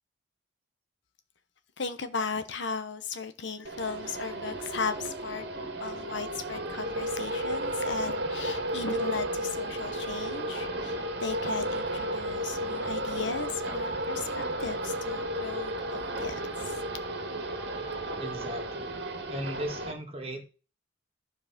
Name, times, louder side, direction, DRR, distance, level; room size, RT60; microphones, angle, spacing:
voice 1, 1.8-5.5 5.8-16.7, left 5 dB, 65° left, 1.0 m, -36 dB
sound 1, 3.6-19.9, right 1 dB, 60° right, 1.7 m, -33 dB
voice 2, 18.2-19.0 19.3-20.5, right 1 dB, 30° right, 1.9 m, -37 dB
12.5 x 4.7 x 5.9 m
head